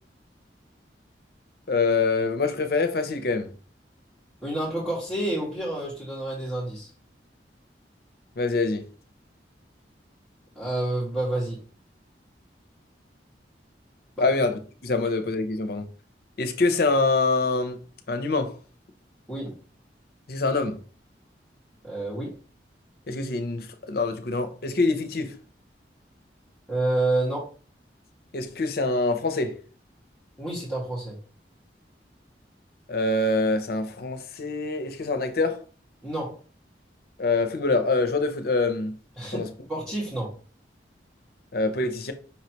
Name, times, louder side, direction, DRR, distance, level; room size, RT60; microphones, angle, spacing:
voice 1, 1.7-3.5 8.4-8.8 14.2-15.9 16.4-17.8 18.1-18.5 20.3-20.8 23.1-25.3 28.3-29.6 32.9-35.6 37.2-38.9 39.3-39.5 41.5-42.1, left 3 dB, 60° left, 0.7 m, -25 dB
voice 2, 4.4-6.9 10.5-11.6 14.2-14.3 19.3-19.6 21.8-22.3 26.7-27.5 30.4-31.2 36.0-36.4 39.2-40.4, right 2 dB, 5° right, 1.6 m, -29 dB
5.5 x 3.2 x 2.9 m
head